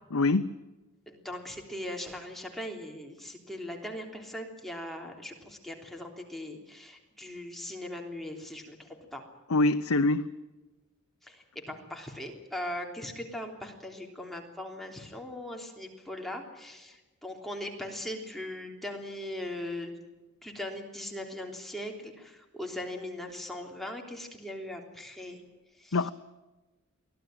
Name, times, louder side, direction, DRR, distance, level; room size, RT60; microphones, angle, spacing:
voice 1, 0.1-0.5 9.5-10.3 25.9-26.1, left 2 dB, 75° left, 10 dB, 0.8 m, -24 dB
voice 2, 1.1-9.2 11.2-19.9 20.4-25.4 25.8-26.1, left 1 dB, ahead, 1 dB, 3.3 m, -40 dB
24.0 x 16.5 x 9.1 m, 1.1 s
head